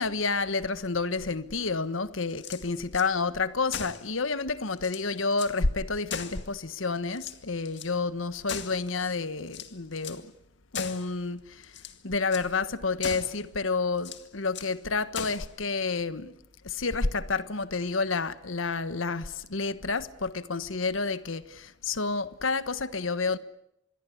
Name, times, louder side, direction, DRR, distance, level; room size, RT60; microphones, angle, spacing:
voice 1, 0.0-10.3 10.7-16.3 16.6-23.4, left 4 dB, 85° left, 1.4 m, -30 dB
sound 1, 2.3-3.1 3.7-4.1 4.5-4.6 4.8-5.6 6.1-6.8 7.1-7.9 8.5-9.0 9.5-10.3 10.7-11.1 11.6-12.0 12.3-12.5 13.0-13.4 14.0-14.8 15.1-15.5, left 7 dB, 60° left, 2.1 m, -39 dB
26.5 x 22.0 x 8.6 m
head